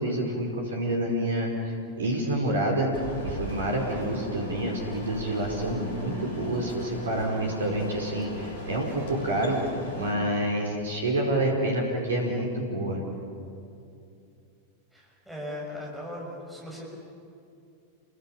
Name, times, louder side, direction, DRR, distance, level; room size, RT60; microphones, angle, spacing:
voice 1, 0.0-2.9 3.2-9.6 9.9-11.8 12.1-13.0, right 1 dB, 65° right, 1 dB, 4.5 m, -28 dB
sound 1, 2.9-10.1, equal, 55° left, 7.0 m, -39 dB
voice 2, 14.9-16.8, left 1 dB, 5° right, -4 dB, 6.7 m, -38 dB
29.0 x 24.0 x 7.2 m, 2.6 s
figure-of-eight pair, 90°, 0 cm